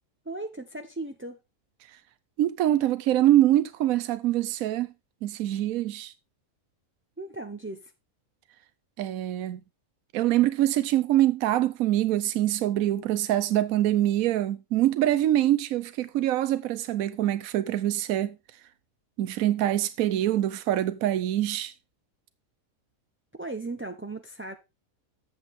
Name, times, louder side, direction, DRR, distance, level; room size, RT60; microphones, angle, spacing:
voice 1, 0.3-1.4 7.2-7.9 23.4-24.5, right 2 dB, 20° right, 0.3 m, -36 dB
voice 2, 2.4-4.9 5.2-6.1 9.0-9.6 10.1-18.4 19.2-21.7, right 13 dB, 80° right, 1.1 m, -24 dB
8.1 x 7.9 x 3.6 m
omnidirectional pair, 1.5 m